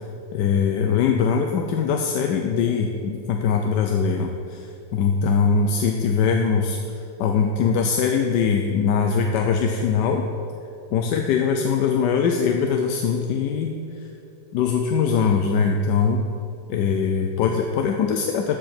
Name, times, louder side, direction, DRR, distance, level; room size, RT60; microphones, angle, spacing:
voice 1, 0.3-6.8 7.2-10.3 10.9-14.1 14.5-16.2 16.7-18.6, left 6 dB, 80° left, 3 dB, 1.2 m, -22 dB
13.5 x 4.9 x 5.9 m, 2.7 s
omnidirectional pair, 1.9 m